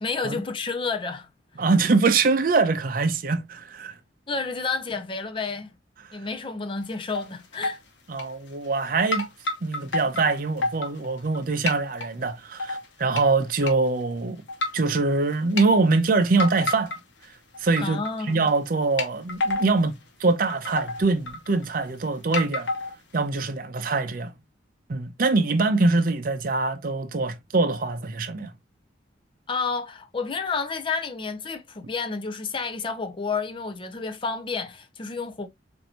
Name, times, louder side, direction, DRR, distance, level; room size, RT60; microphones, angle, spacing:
voice 1, 0.0-1.3 4.3-5.7 6.1-7.8 17.8-18.4 29.5-35.5, left 4 dB, 30° left, 0.5 m, -30 dB
voice 2, 1.6-3.9 8.1-9.3 9.6-14.4 14.7-16.9 17.6-18.0 18.3-22.7 23.1-24.3 24.9-28.5, right 3 dB, 50° right, 0.5 m, -23 dB
sound 1, 6.8-7.3 7.5-7.8 8.2-8.8 9.1-11.4 11.7-12.1 12.6-13.2 13.6-13.7 14.5-14.9 15.3-15.7 16.4-17.2 17.5-18.2 18.5-18.6 19.0-19.8 20.2-20.3 20.5-21.8 22.3-23.2, left 2 dB, 90° left, 1.0 m, -29 dB
4.5 x 2.6 x 2.8 m
head